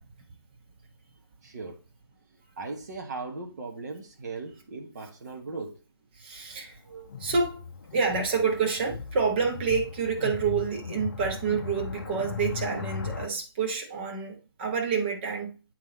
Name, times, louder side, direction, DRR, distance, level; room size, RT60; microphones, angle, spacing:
voice 1, 1.4-1.8 2.6-5.8 6.8-7.1, right 3 dB, 40° right, 1.4 m, -38 dB
voice 2, 6.2-6.8 7.2-7.7 7.9-15.6, right 5 dB, 25° right, 1.3 m, -28 dB
sound 1, 7.1-13.3, left 6 dB, 40° left, 0.8 m, -37 dB
8.3 x 3.9 x 4.1 m
figure-of-eight pair, 155°, 14 cm